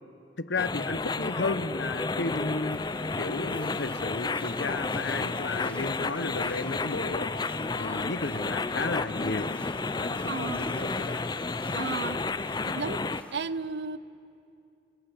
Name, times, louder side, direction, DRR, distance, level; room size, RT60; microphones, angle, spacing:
voice 1, 0.4-2.8 3.2-7.3 7.8-9.5 10.0-11.2 12.5-12.6, left 3 dB, 85° left, 13 dB, 1.0 m, -33 dB
sound 1, 0.6-13.2, left 3 dB, 25° left, 0.5 m, -31 dB
sound 2, 2.2-13.4, left 1 dB, 5° left, 1.2 m, -48 dB
voice 2, 10.3-10.7 11.7-12.2 12.7-13.0 13.3-14.0, right 4 dB, 70° right, 17 dB, 0.6 m, -33 dB
30.0 x 19.0 x 8.3 m, 2.6 s
head